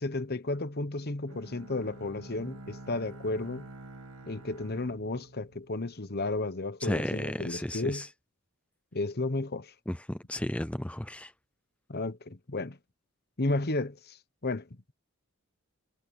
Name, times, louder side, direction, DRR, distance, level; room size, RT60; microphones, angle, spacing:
voice 1, 0.0-3.7 4.2-8.1 8.9-9.7 11.9-12.8 13.4-14.2 14.4-14.7, left 2 dB, 45° left, 1.2 m, -33 dB
Bowed string instrument, 1.3-6.3, right 2 dB, 75° right, 2.1 m, -48 dB
voice 2, 6.8-8.1 9.9-11.3, left 1 dB, 5° left, 0.5 m, -33 dB
head